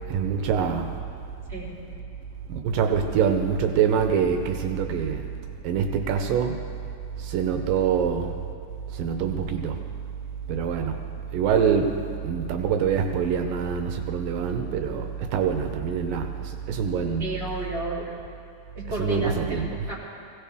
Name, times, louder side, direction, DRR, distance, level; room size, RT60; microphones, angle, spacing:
voice 1, 0.1-0.9 2.5-5.2 5.6-6.5 7.2-8.3 9.0-9.8 10.5-11.0 11.3-11.9 12.2-17.4 19.0-19.8, right 7 dB, 85° right, 5 dB, 2.5 m, -25 dB
voice 2, 17.2-18.0 18.7-20.0, right 1 dB, 20° right, -7 dB, 3.3 m, -31 dB
21.5 x 16.5 x 3.5 m, 2.4 s
omnidirectional pair, 3.9 m